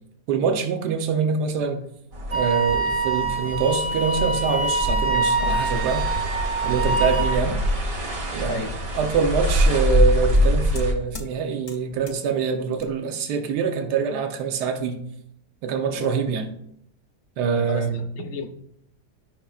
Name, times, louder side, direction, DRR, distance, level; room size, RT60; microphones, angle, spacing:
voice 1, 0.3-1.8 2.3-6.1 6.6-7.6 8.3-8.7 8.9-15.0 15.6-16.5 17.4-18.3, right 5 dB, 80° right, 1.4 m, -24 dB
sound 1, 2.1-10.9, equal, 60° right, 1.9 m, -24 dB
Wind instrument woodwind instrument, 2.3-7.4, right 4 dB, 30° right, 0.8 m, -25 dB
sound 2, 6.1-11.3 11.7-12.3 12.8-12.9, left 2 dB, 40° left, 0.7 m, -43 dB
voice 2, 15.9-16.4 17.4-18.5, left 3 dB, 60° left, 1.1 m, -34 dB
12.5 x 5.7 x 2.4 m
omnidirectional pair, 1.7 m